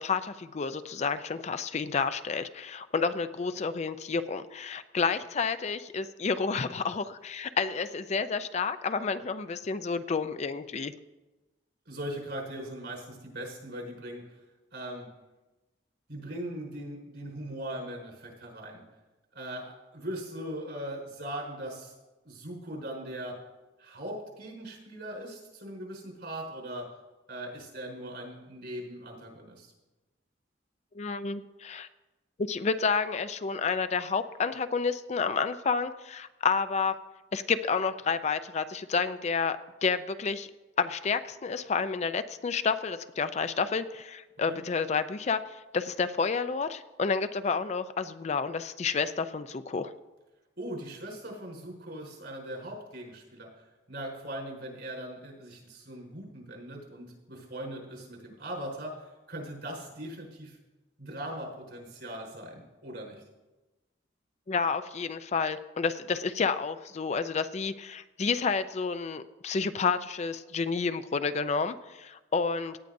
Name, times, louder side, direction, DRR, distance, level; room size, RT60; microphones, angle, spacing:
voice 1, 0.0-10.9 30.9-31.9 32.5-37.0 37.3-40.5 40.8-49.9 64.5-72.8, left 5 dB, 40° left, 11 dB, 0.4 m, -30 dB
voice 2, 11.9-14.4 14.7-15.1 16.1-18.8 19.3-21.9 22.2-23.4 23.8-26.9 27.3-29.7 44.5-44.6 50.6-60.6 61.0-63.2, right 1 dB, 75° right, -1 dB, 4.7 m, -40 dB
17.5 x 10.5 x 2.6 m, 1.1 s
head